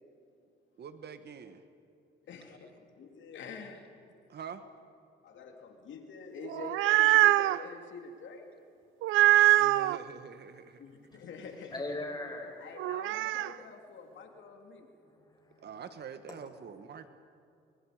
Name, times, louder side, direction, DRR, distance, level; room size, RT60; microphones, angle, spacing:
voice 1, 0.8-1.6 4.3-4.6 9.6-11.2 15.6-17.1, right 7 dB, 55° right, 10 dB, 1.5 m, -46 dB
voice 2, 2.3-2.7 3.0-4.0 5.2-8.5 10.8-11.8 12.6-14.9, left 5 dB, 70° left, 4 dB, 2.6 m, -46 dB
sound 1, 6.4-7.6 9.0-10.0 12.8-13.5, right 16 dB, 90° right, 0.5 m, -23 dB
voice 3, 11.7-12.6 13.2-13.4 14.2-14.3 15.1-15.7, left 2 dB, 20° left, 0 dB, 7.0 m, -40 dB
29.0 x 25.0 x 5.0 m, 2.6 s
cardioid pair, 90°, 20 cm